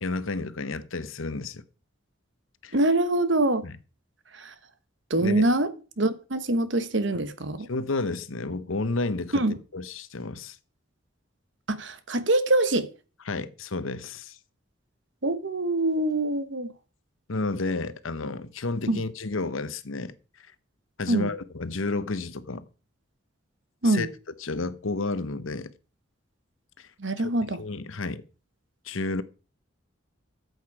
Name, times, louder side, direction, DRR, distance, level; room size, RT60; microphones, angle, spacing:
voice 1, 0.0-1.6 2.6-2.8 3.6-3.7 5.2-5.5 7.7-9.4 9.7-10.6 13.3-14.4 17.3-20.1 21.0-22.7 23.8-24.1 24.4-25.7 26.8-26.9 27.6-28.2 28.8-29.2, left 3 dB, 90° left, 0.9 m, -31 dB
voice 2, 2.7-3.6 4.3-4.5 5.1-5.7 6.0-7.7 9.3-9.6 11.7-12.9 15.2-16.7 18.9-19.0 21.1-21.3 23.8-24.1 27.0-27.6, right 2 dB, 65° right, 1.2 m, -24 dB
13.5 x 8.0 x 4.8 m
head